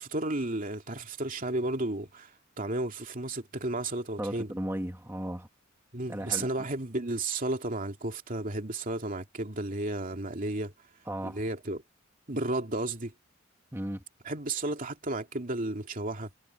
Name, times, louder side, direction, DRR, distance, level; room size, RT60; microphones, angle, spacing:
voice 1, 0.0-2.3 2.6-4.5 5.9-10.7 11.2-11.8 12.3-13.1 14.2-16.3, right 2 dB, 45° right, 2.7 m, -33 dB
voice 2, 4.2-5.5 6.1-6.7 11.0-11.4 13.7-14.0, right 1 dB, 15° right, 1.6 m, -35 dB
head